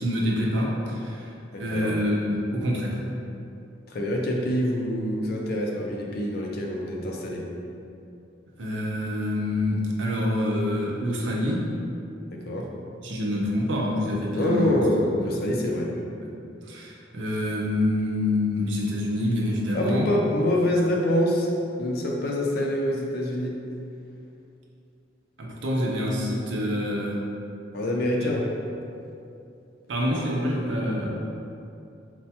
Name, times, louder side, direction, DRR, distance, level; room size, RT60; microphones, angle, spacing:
voice 1, 0.0-3.0 8.6-11.7 13.0-14.7 15.3-15.4 16.2-16.3 16.6-20.1 25.4-27.2 28.0-28.3 29.9-31.1, left 1 dB, 75° right, -2 dB, 0.6 m, -26 dB
voice 2, 1.5-2.0 3.9-7.5 12.3-12.7 14.3-15.9 19.7-21.5 21.8-23.6 27.7-28.5, left 1 dB, 55° left, -1 dB, 0.4 m, -25 dB
4.3 x 2.2 x 2.8 m, 2.6 s
head